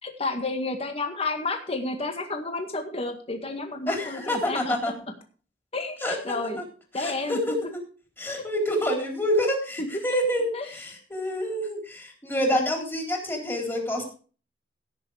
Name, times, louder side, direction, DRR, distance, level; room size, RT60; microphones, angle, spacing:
voice 1, 0.0-4.8 5.7-6.6 6.9-7.6 8.4-8.5 9.8-9.9 10.5-10.7, left 2 dB, 35° left, 4 dB, 1.9 m, -31 dB
voice 2, 3.9-4.9 6.0-6.2 7.0-7.4 8.2-14.0, equal, 15° left, 1 dB, 3.8 m, -27 dB
16.5 x 6.8 x 4.9 m, 0.39 s
head